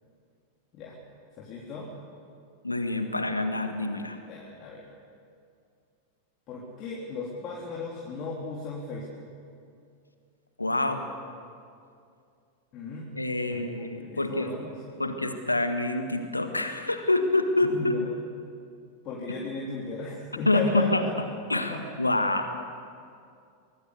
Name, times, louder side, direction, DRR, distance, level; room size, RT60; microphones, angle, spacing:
voice 1, 1.4-1.9 4.2-4.8 6.5-9.2 12.7-13.1 13.5-14.8 17.6-18.1 19.0-21.1 21.5-22.0, left 3 dB, 35° left, -4 dB, 4.0 m, -36 dB
voice 2, 2.6-4.2 10.6-11.1 13.2-14.5 15.0-17.9 20.5-21.0 21.5-22.6, left 2 dB, 85° left, 7 dB, 1.8 m, -26 dB
24.5 x 19.5 x 8.3 m, 2.4 s
figure-of-eight pair, 90°, 0 cm